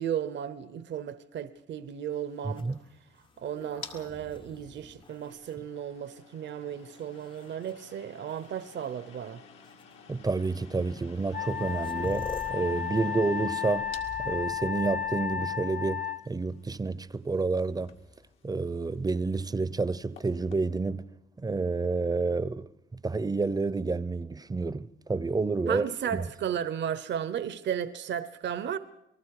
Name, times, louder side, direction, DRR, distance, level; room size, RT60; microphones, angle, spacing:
voice 1, 0.0-2.7 3.4-9.4 25.7-28.8, right 9 dB, 65° right, 0.9 m, -34 dB
sound 1, 2.0-20.7, left 6 dB, 80° left, 2.2 m, -54 dB
voice 2, 2.4-2.8 10.1-13.9 14.2-18.0 18.4-21.1 21.4-22.7 23.0-25.9 26.1-26.3, right 3 dB, 20° right, 0.7 m, -29 dB
sound 2, 2.5-6.3 7.0-7.7 8.8-8.9 9.6-9.8 11.0-11.1 11.2-15.7 17.6-18.3, left 3 dB, 25° left, 0.7 m, -46 dB
Wind instrument woodwind instrument, 11.3-16.2, left 9 dB, 40° left, 1.0 m, -33 dB
28.0 x 19.5 x 4.9 m
cardioid pair, 90°, 20 cm